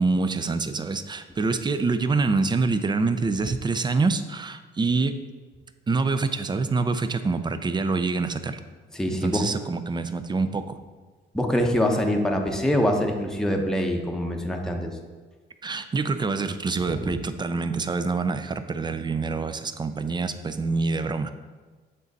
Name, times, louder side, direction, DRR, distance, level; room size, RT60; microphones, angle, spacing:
voice 1, 0.0-5.2 5.9-8.6 9.2-10.8 15.6-21.3, right 4 dB, 20° right, 10 dB, 0.4 m, -26 dB
voice 2, 8.9-9.4 11.3-15.0 16.8-17.1, equal, 5° left, 2 dB, 0.8 m, -24 dB
7.5 x 4.0 x 4.0 m, 1.4 s
cardioid pair, 90°, 20 cm